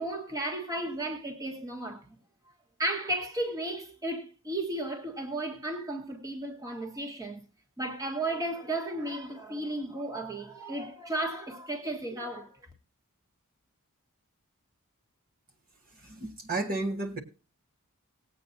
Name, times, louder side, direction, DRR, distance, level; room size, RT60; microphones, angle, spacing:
voice 1, 0.0-2.0 2.8-7.4 7.8-12.6, right 1 dB, 15° right, 1.6 m, -34 dB
voice 2, 15.9-17.2, right 2 dB, 40° right, 1.4 m, -32 dB
19.0 x 8.6 x 2.7 m
head